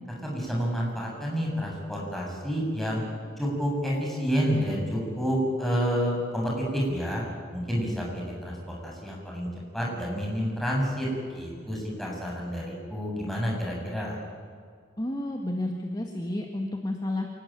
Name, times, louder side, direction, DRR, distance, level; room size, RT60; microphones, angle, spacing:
voice 1, 0.2-3.0 3.4-7.2 7.5-9.5 9.7-11.1 11.3-14.2, equal, ahead, -3 dB, 7.7 m, -29 dB
voice 2, 15.0-17.3, left 1 dB, 20° left, 2 dB, 1.8 m, -31 dB
27.5 x 19.5 x 9.2 m, 2.1 s
head